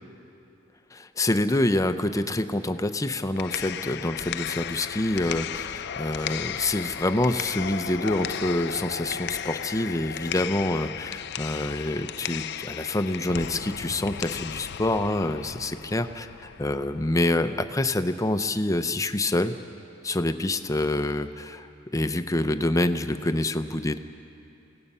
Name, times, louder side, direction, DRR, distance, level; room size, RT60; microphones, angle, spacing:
voice 1, 0.9-19.5 20.0-21.7 21.9-24.0, left 1 dB, 15° left, 9 dB, 0.6 m, -26 dB
sound 1, 3.2-17.2, left 9 dB, 60° left, 0.5 m, -35 dB
28.0 x 18.0 x 5.5 m, 2.7 s
head